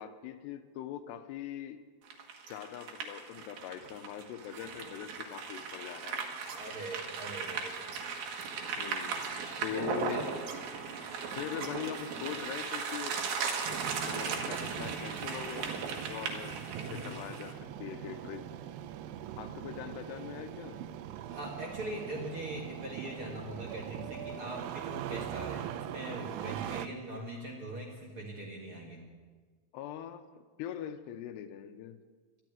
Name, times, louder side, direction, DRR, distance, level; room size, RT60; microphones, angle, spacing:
voice 1, 0.0-1.8 2.5-6.2 8.8-9.3 9.6-10.3 11.4-13.2 13.7-15.7 16.1-18.5 19.4-20.8 29.7-32.0, left 10 dB, 90° left, 9 dB, 2.9 m, -42 dB
sound 1, 2.1-17.5, right 5 dB, 65° right, 3.0 m, -37 dB
voice 2, 6.4-8.0 9.7-10.3 16.8-17.1 21.3-29.0, right 1 dB, 50° right, -2 dB, 1.8 m, -41 dB
Engine starting, 13.6-26.9, right 11 dB, 80° right, 2.7 m, -42 dB
12.5 x 11.5 x 9.3 m, 1.5 s
omnidirectional pair, 4.8 m